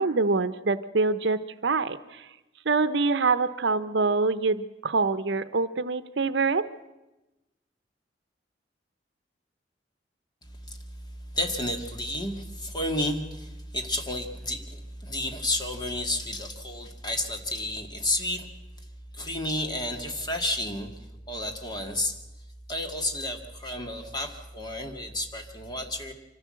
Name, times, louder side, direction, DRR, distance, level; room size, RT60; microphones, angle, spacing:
voice 1, 0.0-2.2 2.7-6.6, right 3 dB, 70° right, 14 dB, 0.8 m, -25 dB
voice 2, 11.3-18.5 19.1-20.9 21.3-22.1 22.7-26.1, left 1 dB, 25° left, 4 dB, 2.0 m, -31 dB
24.5 x 15.0 x 7.7 m, 1.0 s
head